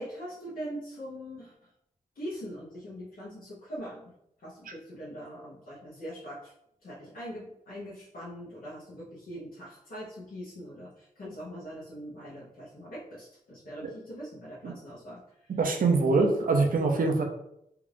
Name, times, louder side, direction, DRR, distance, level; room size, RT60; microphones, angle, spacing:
voice 1, 0.0-1.7 2.1-4.1 4.4-6.5 6.8-15.5, equal, 75° left, -8 dB, 1.0 m, -42 dB
voice 2, 15.6-17.2, right 3 dB, 70° right, 3 dB, 0.6 m, -24 dB
3.4 x 2.5 x 3.3 m, 0.78 s
cardioid pair, 70°, 15 cm